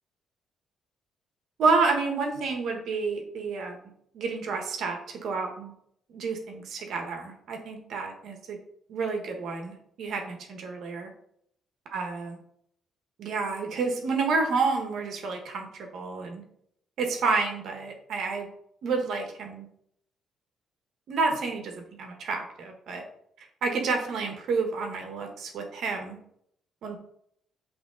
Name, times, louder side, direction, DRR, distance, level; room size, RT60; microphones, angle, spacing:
voice 1, 1.6-3.8 4.1-5.7 6.1-8.6 8.9-11.1 11.9-12.4 13.2-15.7 15.9-16.4 17.0-18.5 18.8-19.7 21.1-23.0 23.4-26.2 26.8-27.0, right 4 dB, 60° right, 4 dB, 1.1 m, -29 dB
7.9 x 3.2 x 3.8 m, 0.70 s
cardioid pair, 150°, 0 cm